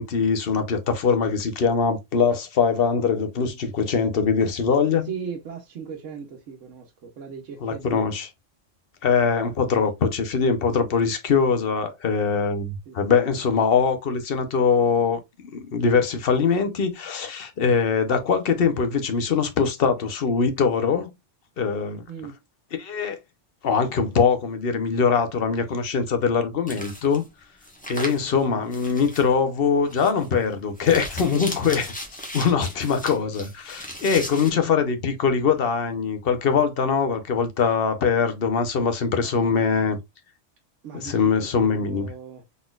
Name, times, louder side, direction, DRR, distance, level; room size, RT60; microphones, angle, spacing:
voice 1, 0.0-5.1 7.6-8.3 9.0-15.2 15.5-21.1 21.6-22.0 22.8-23.2 23.6-27.2 27.9-31.9 32.3-40.0 40.9-42.1, left 5 dB, 55° left, 1.0 m, -22 dB
voice 2, 5.0-8.0 12.9-13.2 22.1-22.4 34.4-34.7 39.1-40.0 40.8-42.4, right 6 dB, 85° right, 1.2 m, -38 dB
sound 1, 26.7-27.2 27.6-28.3 28.7-29.3 29.8-30.3 30.8-34.5, left 1 dB, 5° left, 1.1 m, -36 dB
4.1 x 3.8 x 2.3 m
omnidirectional pair, 1.3 m